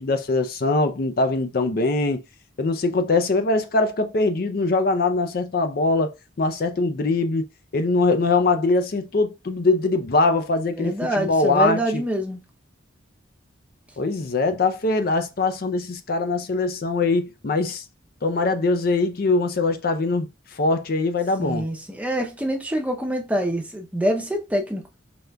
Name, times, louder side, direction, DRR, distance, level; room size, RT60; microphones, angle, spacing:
voice 1, 0.0-2.2 2.6-7.5 7.7-12.0 14.0-17.8 18.2-20.3 20.6-21.7, left 3 dB, 50° left, 0.4 m, -22 dB
voice 2, 10.8-12.4 21.4-25.0, equal, 5° right, 0.6 m, -25 dB
5.2 x 3.2 x 2.3 m
head